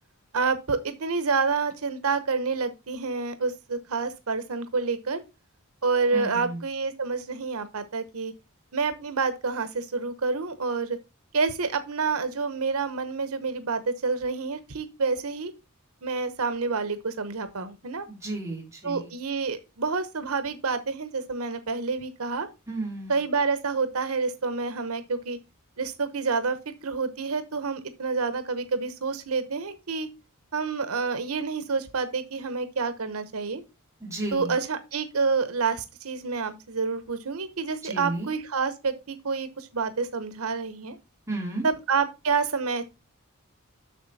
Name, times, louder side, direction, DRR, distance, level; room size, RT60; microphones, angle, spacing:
voice 1, 0.3-5.2 5.8-8.3 8.7-11.0 11.3-15.5 16.0-18.1 18.8-22.5 23.1-25.4 25.8-30.1 30.5-33.6 34.3-41.0 41.6-42.9, right 4 dB, 90° right, 1.0 m, -28 dB
voice 2, 6.1-6.6 18.1-19.1 22.7-23.2 34.0-34.5 37.8-38.3 41.3-41.6, right 2 dB, 15° right, 3.2 m, -33 dB
7.4 x 6.6 x 4.1 m
head